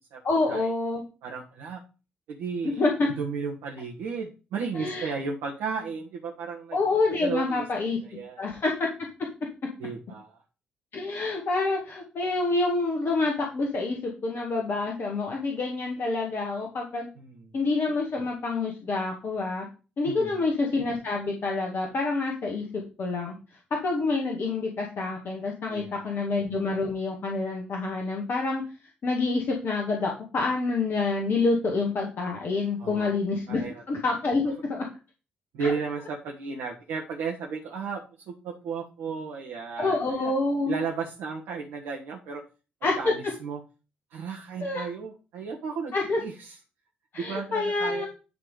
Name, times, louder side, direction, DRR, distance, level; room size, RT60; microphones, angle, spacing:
voice 1, 0.2-1.0 2.8-3.1 4.7-5.1 6.7-8.0 8.4-8.9 10.9-17.1 17.5-19.7 20.0-23.3 23.8-28.6 29.0-34.9 35.6-35.7 39.8-40.8 42.8-42.9 44.6-44.9 45.9-46.2 47.1-48.1, left 3 dB, 45° left, 0 dB, 1.9 m, -27 dB
voice 2, 1.2-1.8 2.3-2.8 3.2-6.8 7.2-7.7 8.0-8.4 9.8-10.4 17.2-17.5 20.0-20.4 25.7-26.2 32.8-33.1 33.5-33.8 35.5-40.3 40.6-42.4 43.0-43.6 44.1-46.6 47.1-48.1, right 5 dB, 65° right, -1 dB, 1.4 m, -34 dB
10.5 x 3.6 x 4.9 m, 0.33 s
figure-of-eight pair, 40°, 5 cm